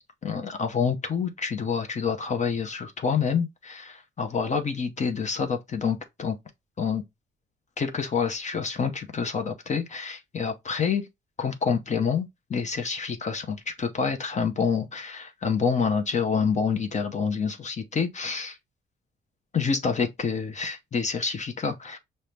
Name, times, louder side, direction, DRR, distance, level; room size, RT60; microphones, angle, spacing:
voice 1, 0.2-6.4 6.8-7.0 7.8-11.1 11.4-18.6 19.5-22.0, left 6 dB, 35° left, 0.7 m, -27 dB
5.4 x 2.1 x 3.2 m
cardioid pair, 90°, 20 cm